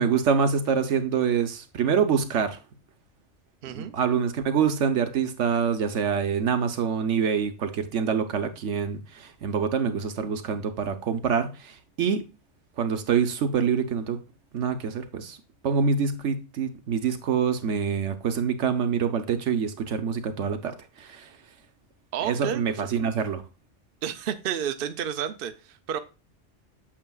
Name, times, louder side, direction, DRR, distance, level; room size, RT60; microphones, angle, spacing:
voice 1, 0.0-2.6 3.7-12.2 12.8-14.2 14.5-15.4 15.6-21.3 22.2-23.4, right 6 dB, 80° right, 1.2 m, -26 dB
voice 2, 3.6-3.9 22.1-22.6 23.0-23.1 24.0-26.0, right 9 dB, 60° right, 0.7 m, -31 dB
8.8 x 6.7 x 2.3 m
omnidirectional pair, 1.2 m